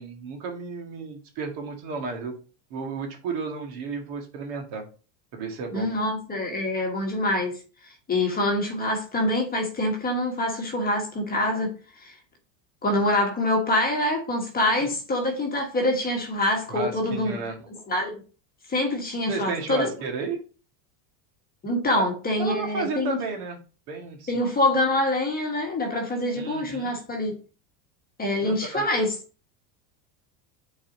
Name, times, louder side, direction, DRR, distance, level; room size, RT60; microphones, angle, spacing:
voice 1, 0.0-2.3 2.7-4.8 5.3-5.9 14.8-14.9 16.7-17.9 19.3-20.4 22.0-22.1 22.4-23.6 23.9-24.4 26.4-27.0 28.4-28.8, right 4 dB, 60° right, 1.8 m, -33 dB
voice 2, 5.7-12.1 12.8-17.4 17.9-18.2 18.7-19.9 21.6-23.2 24.3-27.4 28.2-29.1, left 1 dB, 20° left, 1.3 m, -25 dB
8.6 x 4.1 x 2.7 m
supercardioid pair, 135°, 49 cm